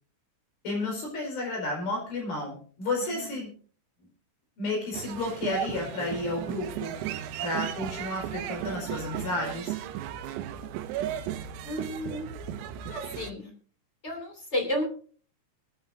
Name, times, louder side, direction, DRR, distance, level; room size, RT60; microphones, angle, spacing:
voice 1, 0.6-3.5 4.6-6.9 7.4-9.7, left 2 dB, 50° left, 0 dB, 6.5 m, -32 dB
sound 1, 4.9-13.3, right 11 dB, 80° right, 2.6 m, -35 dB
voice 2, 11.6-12.3 12.9-13.5 14.0-14.8, left 1 dB, 20° left, 2 dB, 1.8 m, -32 dB
24.0 x 9.4 x 2.7 m, 0.43 s
omnidirectional pair, 5.7 m